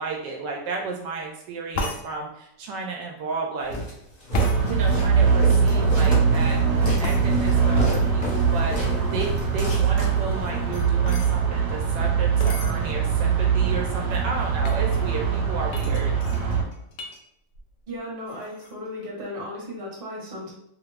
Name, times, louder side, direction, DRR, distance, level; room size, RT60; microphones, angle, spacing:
voice 1, 0.0-3.8 4.6-16.1, right 4 dB, 80° right, 0 dB, 1.2 m, -33 dB
sound 1, 1.7-2.0 4.3-4.6 7.0-7.2 10.3-11.3 12.4-12.7 13.4-13.5 13.7-14.1 14.6-14.8 15.7-17.2 17.5-18.0 18.3-18.7, left 2 dB, 80° left, 0.7 m, -33 dB
Walk footsteps, 3.7-10.6, left 1 dB, 35° left, 0.7 m, -32 dB
sound 2, 4.3-16.6, right 6 dB, 55° right, 1.2 m, -22 dB
voice 2, 17.9-20.5, left 1 dB, 35° right, -3 dB, 1.1 m, -35 dB
3.0 x 2.5 x 3.2 m, 0.76 s
omnidirectional pair, 1.9 m